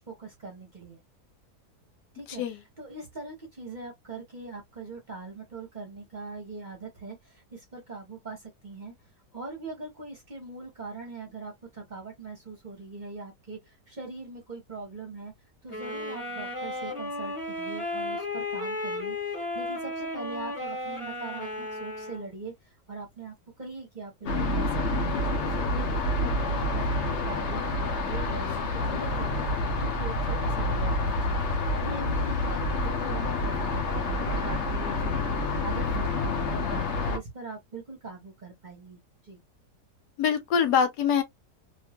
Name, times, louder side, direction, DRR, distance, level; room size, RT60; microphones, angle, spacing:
voice 1, 0.1-1.0 2.1-2.4 2.8-8.9 9.3-15.3 15.6-29.5 29.8-31.4 31.8-39.4, right 3 dB, 35° right, 0.9 m, -41 dB
sound 1, 15.7-22.3, left 2 dB, 20° left, 1.5 m, -34 dB
sound 2, 24.3-37.2, left 2 dB, 55° left, 0.9 m, -28 dB
voice 2, 40.2-41.2, left 7 dB, 80° left, 1.2 m, -24 dB
3.1 x 2.8 x 2.2 m
omnidirectional pair, 1.8 m